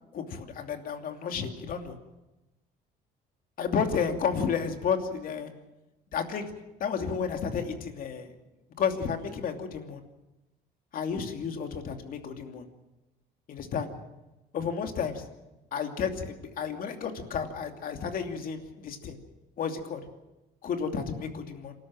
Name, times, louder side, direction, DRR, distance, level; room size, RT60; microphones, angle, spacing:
voice 1, 0.1-2.0 3.6-5.5 6.1-6.5 6.8-8.3 8.8-10.0 10.9-12.6 13.5-13.9 14.5-15.2 15.7-19.2 19.6-20.0 20.6-21.7, left 6 dB, 55° left, 5 dB, 2.8 m, -32 dB
27.5 x 13.0 x 7.5 m, 1.0 s
cardioid pair, 110°, 17 cm